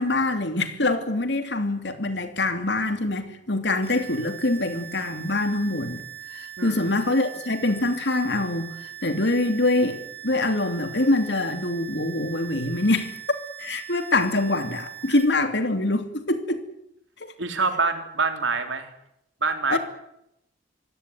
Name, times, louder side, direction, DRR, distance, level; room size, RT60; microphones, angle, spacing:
voice 1, 0.0-6.0 6.3-13.1 13.6-16.6 19.7-19.8, left 2 dB, 65° left, 2.8 m, -24 dB
sound 1, 3.8-15.2, right 12 dB, 30° right, 3.9 m, -41 dB
voice 2, 17.4-18.9 19.4-19.8, right 4 dB, 85° right, 3.8 m, -25 dB
25.0 x 17.0 x 9.6 m
head